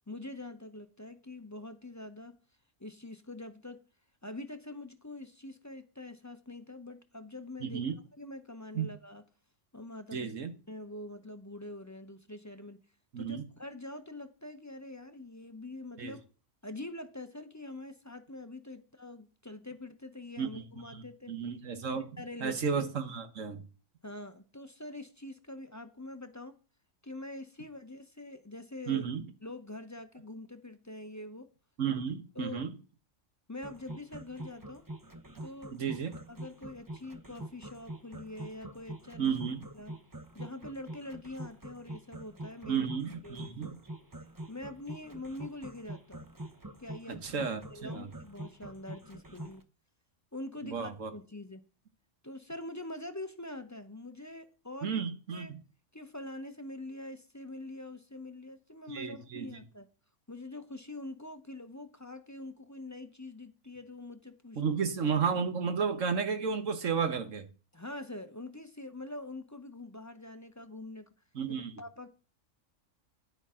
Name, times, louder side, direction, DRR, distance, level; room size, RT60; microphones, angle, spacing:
voice 1, 0.1-2.4 2.8-3.8 4.2-7.9 8.2-9.2 9.7-10.3 10.7-12.8 13.2-16.2 16.6-21.3 21.9-22.8 24.0-26.5 27.0-29.0 29.4-31.5 32.3-32.6 33.5-34.8 35.4-39.3 39.7-39.9 40.3-42.9 43.2-43.7 44.5-46.3 46.8-47.3 47.7-49.6 50.3-51.6 52.2-55.0 55.3-55.5 55.9-59.9 60.3-64.6 67.7-71.1 71.8-72.1, left 2 dB, 15° left, 0.7 m, -44 dB
voice 2, 7.6-7.9 8.7-8.9 10.1-10.5 13.1-13.5 16.0-16.1 20.4-22.0 22.4-23.6 28.9-29.3 31.8-32.7 35.7-36.2 39.2-39.6 42.7-43.8 47.1-48.1 50.6-51.1 54.8-55.6 58.9-59.5 64.5-67.4 71.3-71.7, right 6 dB, 75° right, 1.6 m, -33 dB
sound 1, 33.6-49.6, right 1 dB, 20° right, 0.8 m, -45 dB
10.0 x 9.9 x 3.7 m
omnidirectional pair, 1.3 m